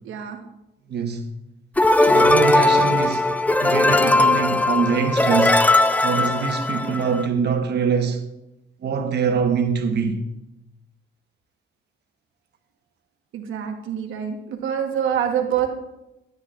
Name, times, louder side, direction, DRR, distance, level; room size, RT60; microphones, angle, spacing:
voice 1, 0.0-0.4 13.3-15.7, right 9 dB, 80° right, 1.2 m, -25 dB
voice 2, 0.9-1.3 2.0-5.6 6.0-8.2 8.8-10.2, right 6 dB, 55° right, 1.2 m, -24 dB
sound 1, 1.8-7.3, left 2 dB, 10° left, 0.5 m, -18 dB
14.5 x 8.5 x 2.5 m
cardioid pair, 90°, 20 cm